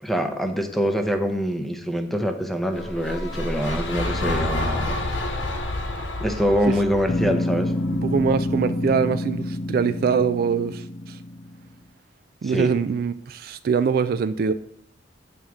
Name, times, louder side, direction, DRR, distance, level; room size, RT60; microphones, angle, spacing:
voice 1, 0.0-5.0 6.2-7.7 12.4-12.7, equal, ahead, 6 dB, 0.7 m, -24 dB
sound 1, 2.7-8.9, left 2 dB, 85° left, 1.2 m, -29 dB
sound 2, 7.1-11.7, left 1 dB, 35° left, 0.4 m, -28 dB
voice 2, 8.0-11.2 12.4-14.5, right 6 dB, 50° right, 13 dB, 0.3 m, -23 dB
8.8 x 3.5 x 6.2 m, 0.72 s
head